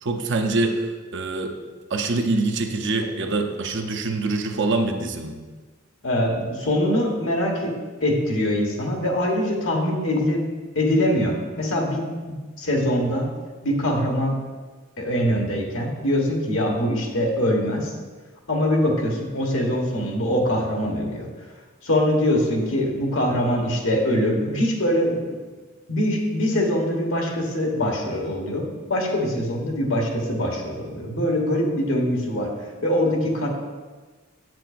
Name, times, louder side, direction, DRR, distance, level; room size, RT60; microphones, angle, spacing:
voice 1, 0.0-1.5 1.9-5.4, right 3 dB, 60° right, 4 dB, 0.7 m, -25 dB
voice 2, 6.0-10.5 10.7-13.3 13.6-14.4 15.0-17.9 18.5-21.3 21.8-25.4 25.9-32.5 32.8-33.5, left 1 dB, 65° left, 0 dB, 1.4 m, -23 dB
8.0 x 7.6 x 2.5 m, 1.3 s
head